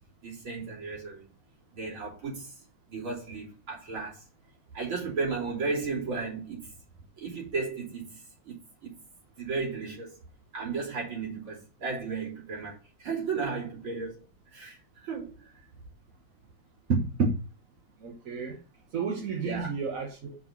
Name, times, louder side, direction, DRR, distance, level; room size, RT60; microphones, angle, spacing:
voice 1, 0.2-1.3 1.7-2.6 2.9-4.3 4.7-6.7 7.2-9.0 9.4-10.2 10.5-14.2 14.5-15.5 19.4-19.7, right 4 dB, 70° right, 4.1 m, -34 dB
voice 2, 16.9-17.4 18.0-18.6 18.9-20.3, right 4 dB, 45° right, 1.3 m, -30 dB
5.6 x 5.0 x 5.8 m
omnidirectional pair, 2.3 m